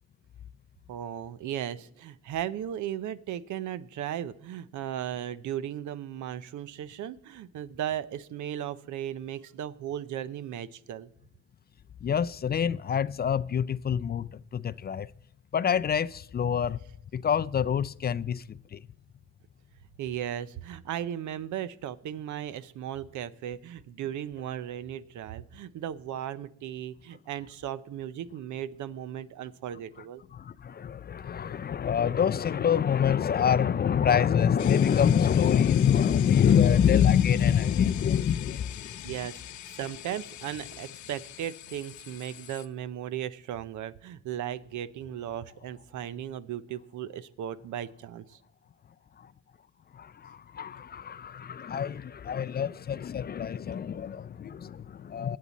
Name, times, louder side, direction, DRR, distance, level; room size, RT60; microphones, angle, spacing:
voice 1, 0.9-11.1 20.0-30.2 39.0-48.4, right 10 dB, 75° right, 0.7 m, -36 dB
voice 2, 12.0-15.1 15.5-16.8 17.1-18.8 30.3-39.1 49.2-49.3 49.9-55.4, left 8 dB, 35° left, 0.4 m, -26 dB
sound 1, 34.6-42.7, left 12 dB, 75° left, 0.8 m, -43 dB
20.0 x 8.6 x 4.1 m
cardioid pair, 90°, 30 cm